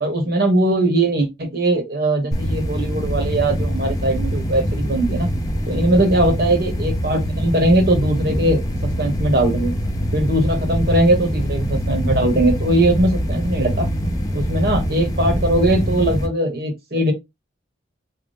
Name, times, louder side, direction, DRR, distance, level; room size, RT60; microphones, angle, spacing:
voice 1, 0.0-5.3 5.7-8.6 9.0-9.7 10.1-13.9 14.3-17.1, right 1 dB, 55° right, 1.2 m, -20 dB
sound 1, 2.3-16.3, equal, 20° left, 0.6 m, -23 dB
4.0 x 2.3 x 3.4 m
head